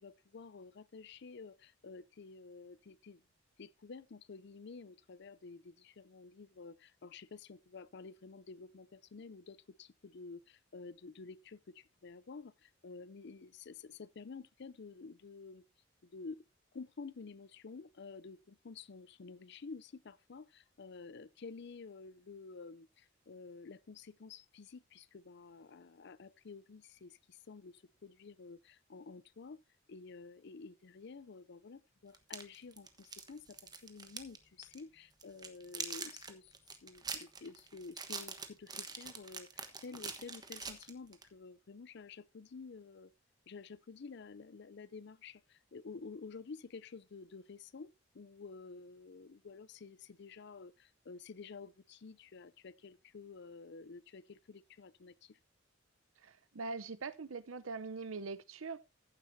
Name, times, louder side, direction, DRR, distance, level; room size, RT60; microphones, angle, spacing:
voice 1, 0.0-3.2 3.6-15.6 16.0-16.4 16.7-29.6 29.9-36.5 36.8-43.1 43.5-55.4, left 4 dB, 55° left, 0.5 m, -51 dB
sound 1, 32.1-34.4 34.6-34.8 35.2-41.3, right 5 dB, 20° right, 1.1 m, -44 dB
voice 2, 56.2-58.8, right 4 dB, 90° right, 0.8 m, -42 dB
14.5 x 7.7 x 2.7 m
head